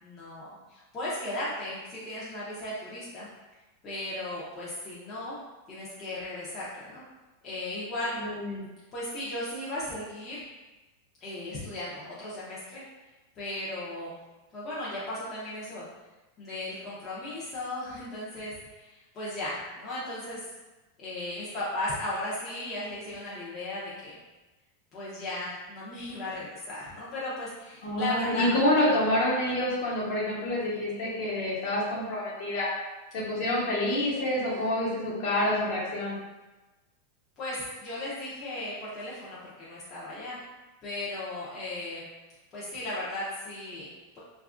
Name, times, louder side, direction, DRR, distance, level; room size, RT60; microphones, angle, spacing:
voice 1, 0.0-3.3 3.8-5.4 5.7-7.0 7.4-8.1 8.9-10.4 11.2-12.8 13.4-14.2 14.5-15.8 16.4-20.4 21.0-24.2 24.9-28.5 34.5-34.6 37.4-40.4 40.8-42.1 42.5-43.9, left 1 dB, 25° left, -9 dB, 0.6 m, -36 dB
voice 2, 8.1-8.7 27.8-32.7 33.1-36.2, left 1 dB, 55° left, -6 dB, 0.9 m, -27 dB
2.7 x 2.3 x 2.4 m, 1.1 s
supercardioid pair, 155°, 0 cm